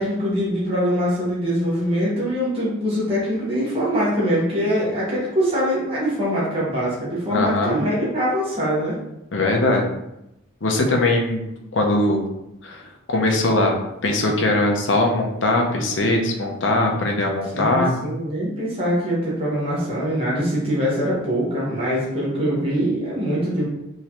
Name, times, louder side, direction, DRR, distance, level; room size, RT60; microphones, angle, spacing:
voice 1, 0.0-9.0 17.5-23.6, equal, 25° right, -7 dB, 1.2 m, -23 dB
voice 2, 7.3-7.8 9.3-9.9 10.6-12.3 12.6-13.8 14.0-18.0, left 2 dB, 65° left, 1 dB, 0.7 m, -21 dB
3.7 x 3.1 x 2.9 m, 0.88 s
head